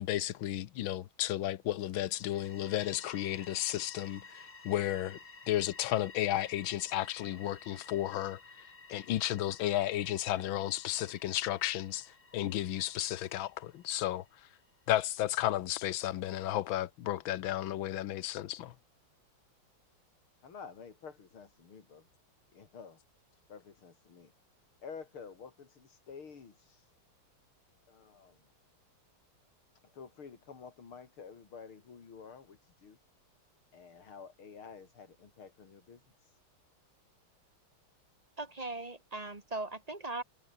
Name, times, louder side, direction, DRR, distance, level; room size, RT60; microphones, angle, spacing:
voice 1, 0.0-5.2 5.5-8.4 8.9-14.2 14.9-18.7, left 13 dB, 75° left, 1.7 m, -33 dB
sound 1, 2.1-14.8, left 3 dB, 35° left, 3.3 m, -54 dB
voice 2, 20.4-22.1 22.5-23.0 23.5-24.3 24.8-26.9 27.9-28.5 29.8-33.0 33.7-36.4, left 6 dB, 90° left, 3.6 m, -50 dB
voice 3, 38.4-40.2, right 2 dB, 20° right, 1.5 m, -39 dB
omnidirectional pair, 2.3 m